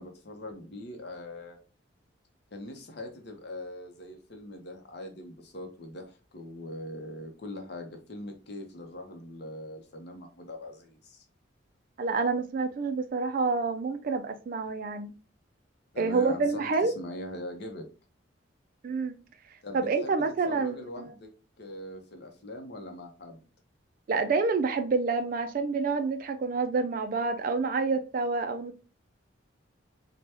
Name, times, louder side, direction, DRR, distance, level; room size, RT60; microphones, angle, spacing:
voice 1, 0.0-1.6 2.5-11.2 15.9-17.8 19.6-21.3 21.6-23.4, left 1 dB, 55° left, 0.7 m, -42 dB
voice 2, 12.0-15.1 16.0-16.9 18.8-19.2 19.7-21.1 24.1-28.8, right 4 dB, 45° right, 0.3 m, -28 dB
3.3 x 2.2 x 2.8 m
head